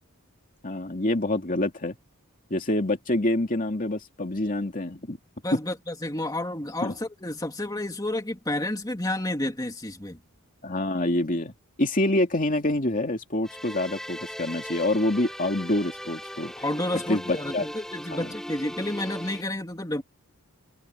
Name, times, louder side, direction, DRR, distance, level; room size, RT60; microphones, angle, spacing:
voice 1, 0.6-2.0 2.5-5.2 6.8-6.9 10.6-11.5 11.8-16.5 16.9-17.7 18.1-18.3, left 1 dB, 40° left, 2.7 m, -26 dB
voice 2, 5.4-10.2 16.6-20.0, left 1 dB, 15° left, 2.6 m, -30 dB
sound 1, 13.4-19.4, equal, ahead, 4.8 m, -39 dB
head